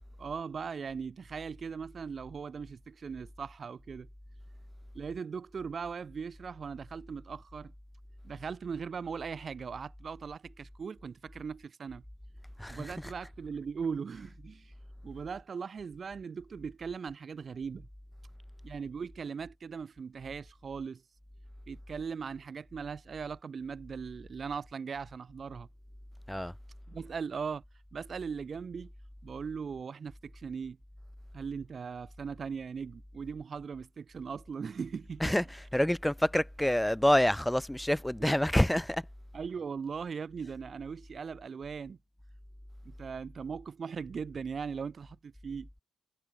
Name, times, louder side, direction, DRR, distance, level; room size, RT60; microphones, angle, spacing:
voice 1, 0.2-4.1 4.9-7.7 8.2-12.0 12.7-14.7 15.0-17.9 18.6-21.0 21.7-25.7 26.9-27.6 27.9-28.9 29.2-30.8 31.3-35.4 38.2-38.3 39.3-42.0 42.8-45.7, right 6 dB, 45° right, 2.7 m, -39 dB
voice 2, 12.6-13.1 26.3-26.5 35.2-39.0, left 1 dB, 5° left, 0.6 m, -27 dB
cardioid pair, 90°, 0 cm